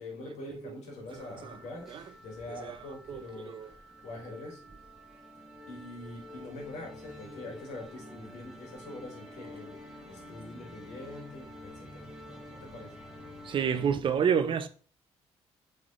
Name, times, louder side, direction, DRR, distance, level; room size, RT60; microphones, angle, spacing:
voice 1, 0.0-1.9 2.2-4.6 5.7-9.7 10.1-12.9, left 2 dB, 80° left, 1.4 m, -44 dB
sound 1, 1.1-13.9, left 1 dB, 5° right, 1.0 m, -49 dB
voice 2, 13.5-14.7, right 7 dB, 45° right, 0.4 m, -27 dB
3.9 x 3.2 x 2.3 m
cardioid pair, 95°, 12 cm